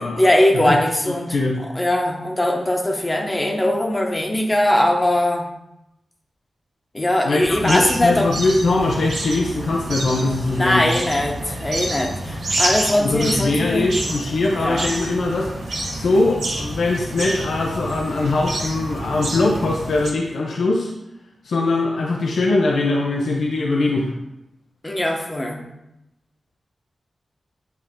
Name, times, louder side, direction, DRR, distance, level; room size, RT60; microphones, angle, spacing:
voice 1, 0.0-1.4 1.7-5.5 6.9-8.3 10.6-13.9 14.6-14.9 24.8-25.6, left 1 dB, 25° left, 1 dB, 1.2 m, -20 dB
voice 2, 1.1-1.6 7.2-10.9 13.0-20.9 21.4-24.1, left 2 dB, 80° left, -1 dB, 0.7 m, -21 dB
sound 1, 7.4-20.1, right 1 dB, 90° right, 1.7 m, -28 dB
9.1 x 3.5 x 3.7 m, 0.87 s
cardioid pair, 65°, 0 cm